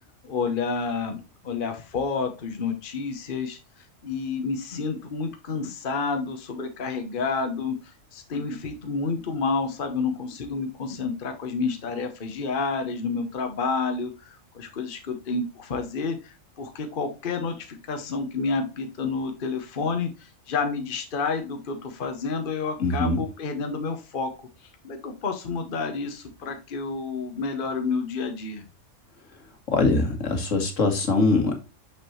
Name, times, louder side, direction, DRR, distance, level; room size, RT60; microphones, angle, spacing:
voice 1, 0.2-3.6 4.0-24.5 24.8-28.6, left 4 dB, 45° left, 1.0 m, -29 dB
voice 2, 22.8-23.2 29.7-31.5, left 3 dB, 70° left, 1.9 m, -22 dB
6.2 x 6.0 x 3.0 m
omnidirectional pair, 1.4 m